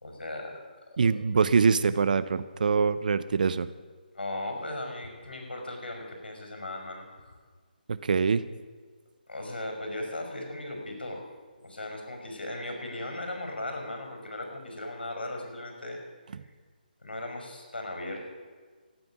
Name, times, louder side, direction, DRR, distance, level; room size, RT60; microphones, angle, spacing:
voice 1, 0.0-1.1 4.1-7.3 9.3-11.2 11.6-16.0 17.0-18.3, left 1 dB, 80° left, 3 dB, 5.2 m, -37 dB
voice 2, 1.0-3.7 7.9-8.4, right 5 dB, 55° right, 14 dB, 0.8 m, -24 dB
14.5 x 9.3 x 9.5 m, 1.5 s
figure-of-eight pair, 150°, 5 cm